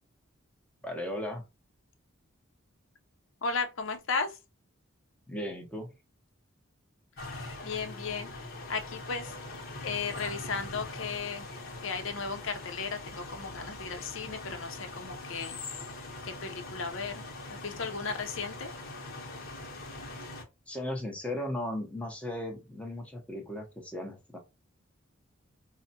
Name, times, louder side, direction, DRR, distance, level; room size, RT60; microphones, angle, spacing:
voice 1, 0.8-1.4 5.3-5.9 20.7-24.4, left 1 dB, 5° left, 0.8 m, -36 dB
voice 2, 3.4-4.4 7.6-8.3 8.7-9.4 9.8-11.5 11.8-15.6 16.2-17.2 17.5-18.7, left 5 dB, 70° left, 0.7 m, -35 dB
sound 1, 7.2-20.4, left 2 dB, 50° left, 1.0 m, -42 dB
4.7 x 2.1 x 2.8 m
head